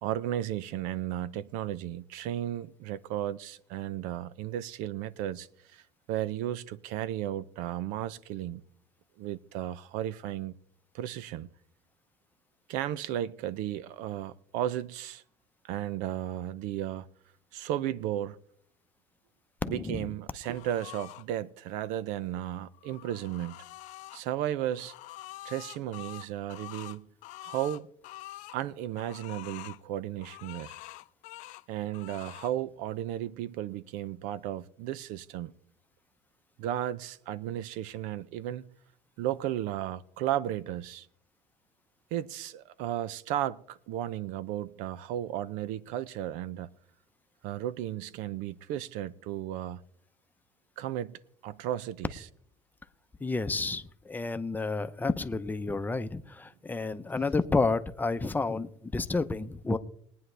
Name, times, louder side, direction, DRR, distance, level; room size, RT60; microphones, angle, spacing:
voice 1, 0.0-5.8 6.1-8.6 9.2-10.5 10.9-11.5 12.7-15.2 15.6-17.1 17.5-18.4 19.7-23.6 24.1-24.9 25.4-27.1 27.4-27.9 28.5-30.8 31.7-35.5 36.6-38.6 39.2-41.1 42.1-46.7 47.4-49.8 50.8-51.1 51.4-52.2, right 12 dB, 80° right, 0.6 m, -34 dB
voice 2, 19.6-20.1 53.2-59.8, left 3 dB, 15° left, 0.7 m, -30 dB
sound 1, 20.4-21.2 22.6-24.2 24.7-28.6 29.0-29.8 30.2-31.6 31.9-32.5, left 17 dB, 65° left, 0.6 m, -46 dB
22.0 x 9.3 x 3.3 m
cardioid pair, 120°, 14 cm